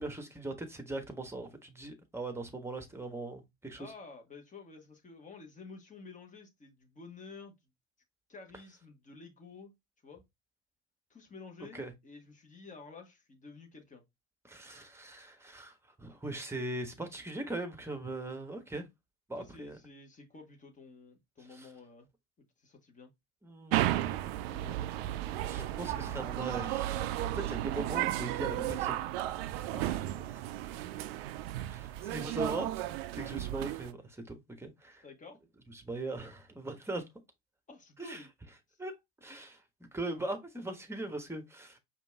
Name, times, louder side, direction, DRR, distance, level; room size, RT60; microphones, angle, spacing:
voice 1, 0.0-3.9 11.7-11.9 14.4-18.9 19.3-19.8 21.5-21.7 23.4-24.1 25.5-29.0 29.5-29.7 30.1-30.8 31.7-35.0 35.7-37.0 38.0-38.3 38.8-41.8, right 2 dB, 5° right, 1.2 m, -40 dB
voice 2, 3.8-7.5 8.3-9.7 10.0-10.2 11.1-14.0 19.4-22.1 22.6-23.1 24.5-24.8 25.4-25.7 29.6-30.1 35.0-35.4 37.7-38.3 38.7-38.8, left 4 dB, 20° left, 1.6 m, -51 dB
sound 1, 23.7-33.9, right 14 dB, 60° right, 0.5 m, -34 dB
5.1 x 2.7 x 3.4 m
figure-of-eight pair, 70°, 34 cm